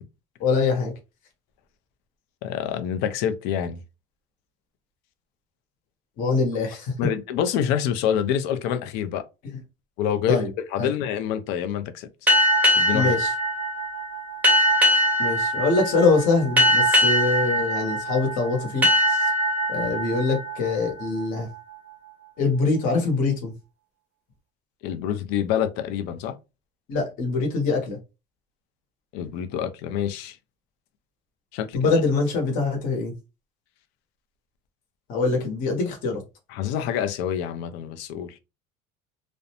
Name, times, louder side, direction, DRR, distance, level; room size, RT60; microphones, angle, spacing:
voice 1, 0.4-0.9 6.2-6.9 10.3-10.5 10.8-10.9 12.9-13.3 15.2-19.3 19.7-21.5 22.4-23.5 26.9-28.0 31.7-33.1 35.1-36.2, left 3 dB, 50° left, 0.9 m, -23 dB
voice 2, 2.4-3.8 7.0-9.2 10.0-10.4 10.7-12.1 12.8-13.1 24.8-26.4 29.1-30.4 31.5-31.9 36.5-38.3, left 9 dB, 65° left, 0.4 m, -26 dB
sound 1, 12.3-21.5, equal, 10° right, 0.6 m, -22 dB
2.5 x 2.0 x 2.8 m
cardioid pair, 170°, 18 cm